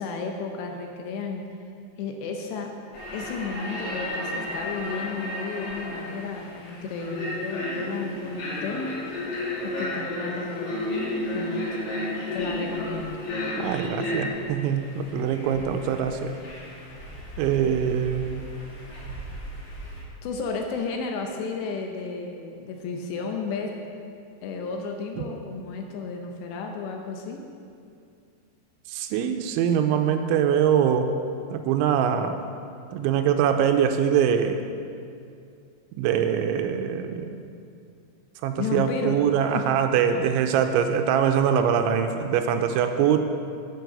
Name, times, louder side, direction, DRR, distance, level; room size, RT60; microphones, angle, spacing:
voice 1, 0.0-1.4 2.0-2.7 3.1-8.8 9.3-10.9 11.3-11.7 12.3-13.2 20.2-23.7 24.4-27.4 38.6-39.2 39.5-39.7, left 4 dB, 80° left, 3 dB, 2.7 m, -33 dB
sound 1, 2.9-20.0, left 1 dB, 50° left, 3.5 m, -33 dB
voice 2, 13.6-16.3 17.4-18.4 28.9-31.1 31.5-32.4 32.9-34.6 36.0-37.3 38.4-43.2, right 8 dB, 85° right, 6 dB, 2.9 m, -23 dB
9.3 x 8.3 x 6.6 m, 2.4 s
omnidirectional pair, 5.5 m